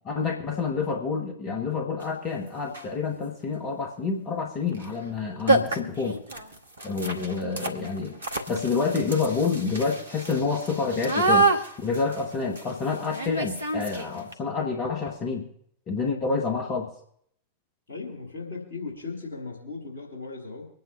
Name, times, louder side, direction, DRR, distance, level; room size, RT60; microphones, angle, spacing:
voice 1, 0.0-6.2 6.8-8.2 8.5-11.5 11.8-15.4 15.9-16.9, left 4 dB, 35° left, 2 dB, 1.7 m, -28 dB
sound 1, 2.0-2.1 2.6-3.0 4.7-4.9 5.1-5.2 5.5-14.3, right 2 dB, 75° right, 1.3 m, -28 dB
voice 2, 17.9-20.7, left 4 dB, 70° left, 0 dB, 3.0 m, -37 dB
25.0 x 9.4 x 2.8 m, 0.66 s
figure-of-eight pair, 90°, 0 cm